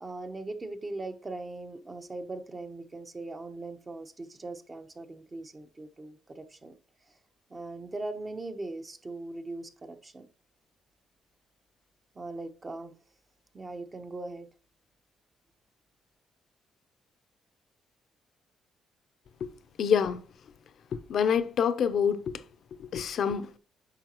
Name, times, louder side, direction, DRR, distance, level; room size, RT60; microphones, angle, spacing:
voice 1, 0.0-6.7 7.1-7.2 7.5-10.3 12.1-12.9 13.5-14.5, right 2 dB, 25° right, 1.0 m, -40 dB
voice 2, 19.8-20.2 21.1-22.4 22.8-23.5, left 7 dB, 65° left, 0.7 m, -26 dB
8.9 x 5.8 x 3.0 m
cardioid pair, 90°, 0 cm